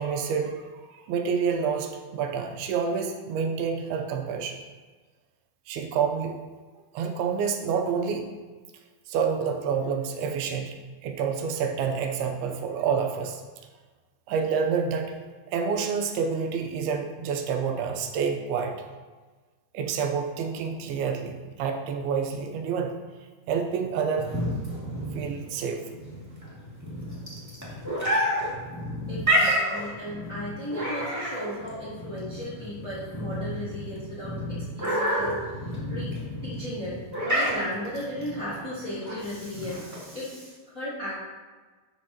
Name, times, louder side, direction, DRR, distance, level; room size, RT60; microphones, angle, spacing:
voice 1, 0.0-4.6 5.7-6.4 6.9-8.3 9.1-10.8 11.0-13.4 14.3-15.1 15.5-18.8 19.7-22.9 23.5-24.3 25.2-25.8, right 6 dB, 85° right, 3 dB, 2.6 m, -28 dB
sound 1, 24.2-40.1, equal, 10° right, 0.8 m, -29 dB
voice 2, 29.1-36.1 36.4-41.1, equal, 60° left, -10 dB, 0.8 m, -36 dB
12.0 x 5.3 x 2.9 m, 1.3 s
omnidirectional pair, 4.5 m